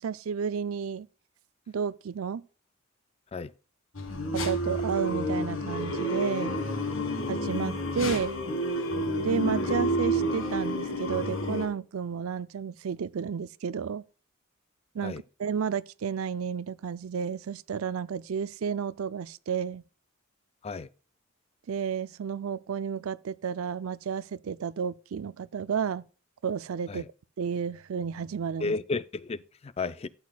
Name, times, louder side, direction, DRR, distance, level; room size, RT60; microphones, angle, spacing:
voice 1, 0.0-1.1 1.7-2.4 4.3-6.6 7.3-8.4 9.2-14.0 14.9-19.8 21.7-26.0 26.4-27.0 27.4-28.8, right 7 dB, 80° right, 0.4 m, -32 dB
sound 1, 4.0-11.7, equal, 70° left, 1.7 m, -29 dB
voice 2, 28.6-30.1, left 4 dB, 30° left, 0.4 m, -33 dB
12.5 x 7.9 x 2.3 m
head